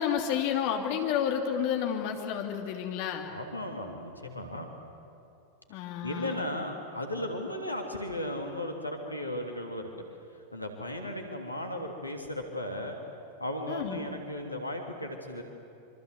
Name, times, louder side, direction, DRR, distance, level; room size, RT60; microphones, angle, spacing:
voice 1, 0.0-3.3 5.7-6.5 13.7-14.0, left 8 dB, 45° left, 3 dB, 2.9 m, -30 dB
voice 2, 3.3-4.7 5.7-10.0 10.5-13.0 13.4-15.4, left 1 dB, 85° left, 2 dB, 2.9 m, -36 dB
26.0 x 25.5 x 8.2 m, 2.7 s
figure-of-eight pair, 90°, 0 cm